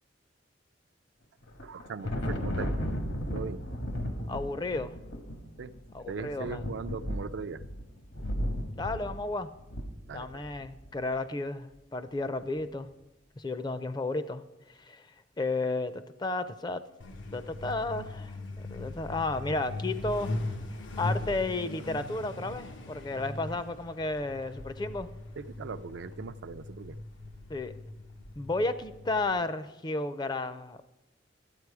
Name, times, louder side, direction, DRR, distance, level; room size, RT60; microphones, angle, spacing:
Thunder, 1.4-10.9, equal, 70° left, 1.2 m, -35 dB
voice 1, 1.6-2.7 3.3-3.6 5.6-5.7 6.0-7.6 10.1-10.4 25.4-27.0, right 5 dB, 65° right, 12 dB, 0.4 m, -39 dB
voice 2, 4.3-4.9 5.9-6.6 8.8-9.5 10.1-12.9 13.4-14.5 14.8-15.1 15.4-16.8 17.3-20.3 21.0-25.1 27.5-27.7 28.4-30.8, left 2 dB, 25° left, 13 dB, 0.4 m, -33 dB
Truck, 17.0-29.3, left 2 dB, 90° left, 0.9 m, -39 dB
12.0 x 8.4 x 4.8 m, 0.96 s
head